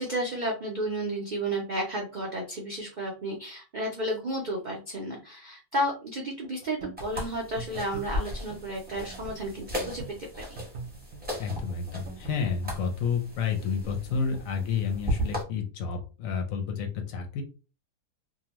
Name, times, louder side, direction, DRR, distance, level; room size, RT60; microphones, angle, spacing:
voice 1, 0.0-10.0 10.4-10.5, right 1 dB, 90° right, -1 dB, 0.4 m, -32 dB
sound 1, 6.4-12.4, right 4 dB, 65° right, 1.0 m, -43 dB
sound 2, 7.0-15.4, equal, 10° right, 0.8 m, -36 dB
voice 2, 11.4-17.4, left 6 dB, 70° left, 4 dB, 0.9 m, -30 dB
2.8 x 2.1 x 2.9 m, 0.34 s
omnidirectional pair, 1.7 m